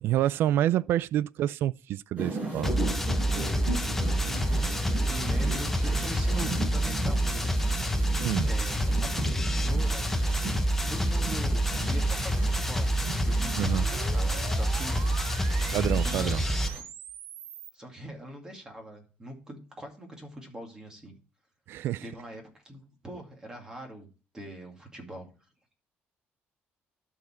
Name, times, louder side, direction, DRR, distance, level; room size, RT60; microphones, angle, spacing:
voice 1, 0.0-2.8 8.2-8.5 13.6-13.9 15.7-16.4 21.7-22.0, right 12 dB, 65° right, 0.3 m, -28 dB
sound 1, 2.2-16.8, right 2 dB, 35° right, 5.2 m, -38 dB
sound 2, 2.6-16.7, right 1 dB, 5° left, 0.7 m, -27 dB
voice 2, 4.4-4.7 5.1-8.2 8.4-10.1 10.9-12.9 13.3-15.4 15.7-16.3 16.8-16.9 17.7-21.2 22.0-24.1 24.3-25.3, right 1 dB, 15° right, 2.2 m, -42 dB
sound 3, 11.0-17.7, right 9 dB, 90° right, 0.9 m, -44 dB
12.5 x 4.8 x 4.4 m
cardioid pair, 150°, 4 cm